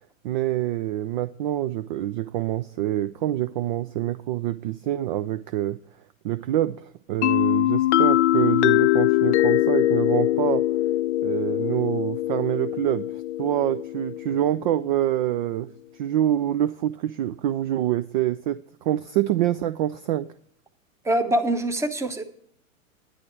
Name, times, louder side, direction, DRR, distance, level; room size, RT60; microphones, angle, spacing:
voice 1, 0.2-5.8 6.2-10.6 11.2-13.1 13.4-15.7 15.9-20.3, right 13 dB, 40° right, 15 dB, 0.4 m, -26 dB
sound 1, 7.2-14.9, left 15 dB, 60° left, 0.5 m, -22 dB
voice 2, 21.0-22.2, right 1 dB, 5° right, 7 dB, 0.9 m, -24 dB
10.5 x 10.0 x 4.5 m, 0.63 s
hypercardioid pair, 105°, 41 cm